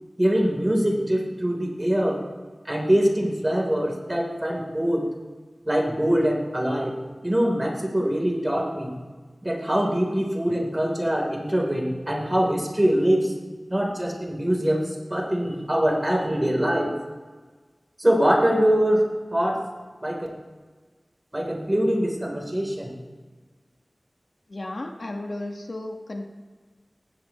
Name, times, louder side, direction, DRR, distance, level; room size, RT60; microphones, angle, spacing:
voice 1, 0.2-2.2 2.7-5.1 5.7-7.0 7.2-8.9 9.4-13.3 13.7-16.9 18.0-19.0 19.3-19.6 20.0-20.3 21.3-22.9, equal, 25° right, 0 dB, 3.5 m, -23 dB
voice 2, 24.5-26.2, left 1 dB, 60° left, 2 dB, 1.5 m, -34 dB
20.5 x 15.5 x 3.1 m, 1.4 s
wide cardioid pair, 60°, 0 cm